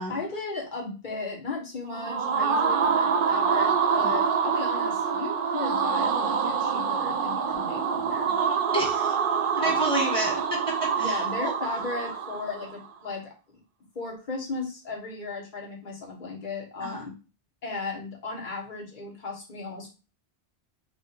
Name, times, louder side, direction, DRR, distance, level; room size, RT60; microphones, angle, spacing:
voice 1, 0.1-8.3 9.6-9.9 11.0-13.3 13.9-17.1 17.6-19.9, left 3 dB, 50° left, -2 dB, 1.5 m, -36 dB
sound 1, 1.8-12.7, right 6 dB, 60° right, 0.7 m, -26 dB
voice 2, 8.7-9.2 9.5-11.5 16.8-17.0, right 1 dB, 5° left, -1 dB, 1.4 m, -30 dB
4.8 x 2.5 x 4.3 m, 0.32 s
omnidirectional pair, 1.1 m